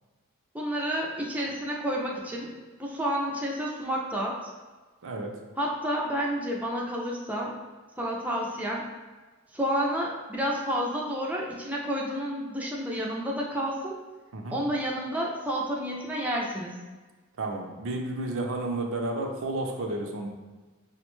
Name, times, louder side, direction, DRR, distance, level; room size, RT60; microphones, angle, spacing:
voice 1, 0.5-2.5 2.8-4.5 5.6-7.5 8.0-8.8 9.5-14.0 14.5-16.7, equal, 5° right, -3 dB, 0.4 m, -30 dB
voice 2, 17.4-20.3, right 2 dB, 65° right, 2 dB, 0.5 m, -31 dB
4.8 x 2.1 x 3.0 m, 1.3 s
head